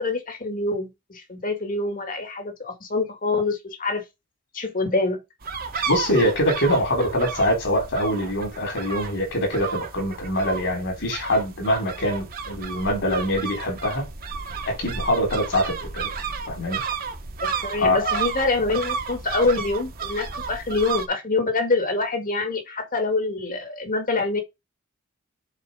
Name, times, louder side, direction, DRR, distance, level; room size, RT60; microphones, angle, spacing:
voice 1, 0.0-4.0 4.5-5.2 17.4-24.4, left 3 dB, 40° left, 2.1 m, -25 dB
sound 1, 5.4-21.1, right 6 dB, 45° right, 1.4 m, -32 dB
voice 2, 5.9-14.0 14.7-16.1 16.5-16.8 17.8-18.2, left 1 dB, 60° left, 4.1 m, -24 dB
7.4 x 4.5 x 5.5 m
head